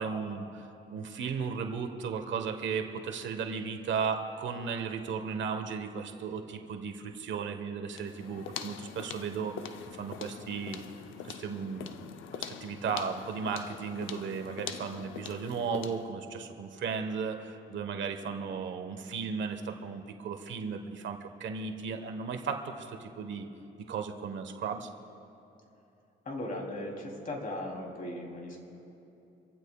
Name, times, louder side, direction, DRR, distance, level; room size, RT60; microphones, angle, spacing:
voice 1, 0.0-9.5 10.0-10.8 11.2-12.1 12.4-23.5 23.9-24.9, right 6 dB, 70° right, 6 dB, 1.3 m, -35 dB
sound 1, 7.9-16.1, left 8 dB, 80° left, 0.7 m, -43 dB
voice 2, 18.2-18.6 26.2-28.6, left 1 dB, 45° left, 0 dB, 3.3 m, -38 dB
26.5 x 15.5 x 2.4 m, 2.9 s
cardioid pair, 90°, 20 cm